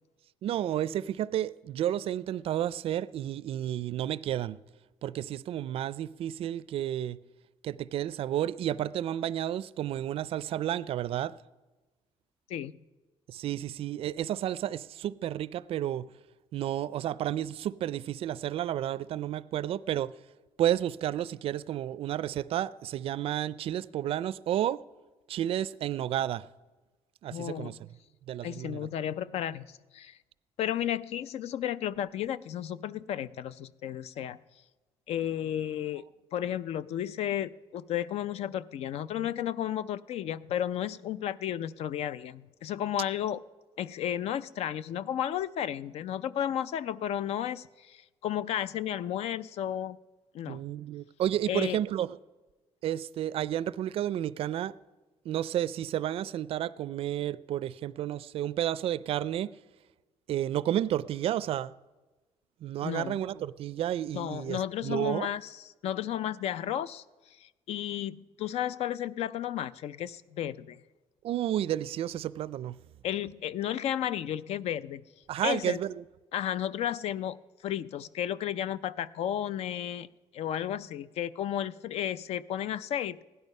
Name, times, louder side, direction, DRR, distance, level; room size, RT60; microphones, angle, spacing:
voice 1, 0.4-4.6 5.0-7.2 7.6-11.3 13.3-16.1 16.5-20.1 20.6-24.8 25.3-26.5 27.2-27.8 28.3-28.9 50.5-52.2 52.8-54.7 55.3-59.5 60.3-61.7 62.6-65.3 71.2-72.8 75.3-76.0, right 11 dB, 60° right, 0.4 m, -31 dB
voice 2, 27.3-27.8 28.4-30.2 30.6-34.4 35.1-36.0 36.3-43.4 43.8-50.0 50.3-50.6 51.5-51.8 62.8-63.2 64.1-67.0 67.4-70.8 73.0-75.0 75.4-75.8 76.3-77.4 77.6-80.1 80.3-83.2, left 10 dB, 70° left, 0.4 m, -33 dB
16.0 x 11.0 x 5.3 m
cardioid pair, 140°, 11 cm